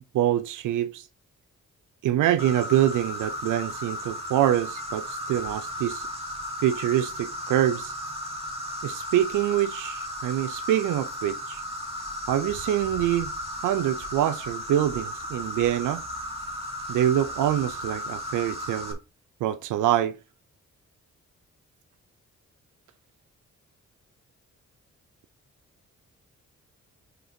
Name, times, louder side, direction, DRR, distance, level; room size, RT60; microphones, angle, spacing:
voice 1, 0.1-1.1 2.0-6.1 6.6-7.9 8.8-11.6 12.3-13.3 13.6-16.0 16.9-19.0 19.4-20.2, right 12 dB, 90° right, 0.5 m, -25 dB
Insect, 2.4-18.9, left 1 dB, 20° right, 2.3 m, -35 dB
6.6 x 3.8 x 5.1 m
cardioid pair, 80°, 30 cm